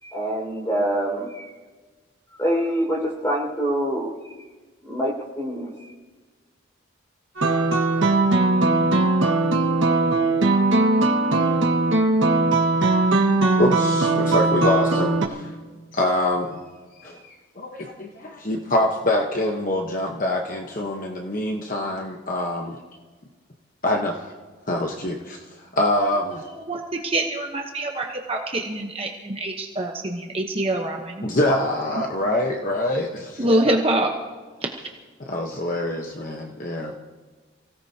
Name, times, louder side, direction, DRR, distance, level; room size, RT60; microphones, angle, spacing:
voice 1, 0.0-1.5 2.3-4.3 4.8-5.9, right 1 dB, 15° left, -1 dB, 5.2 m, -26 dB
sound 1, 7.4-15.3, right 2 dB, 75° right, 1.7 m, -19 dB
voice 2, 13.6-15.6 15.9-16.6 17.0-22.8 23.8-24.1 24.7-26.5 31.2-33.7 35.2-36.9, left 1 dB, 40° left, 1 dB, 1.2 m, -25 dB
voice 3, 26.6-31.2 33.4-34.1, right 1 dB, 30° right, 1 dB, 1.0 m, -25 dB
28.5 x 17.5 x 2.9 m, 1.4 s
head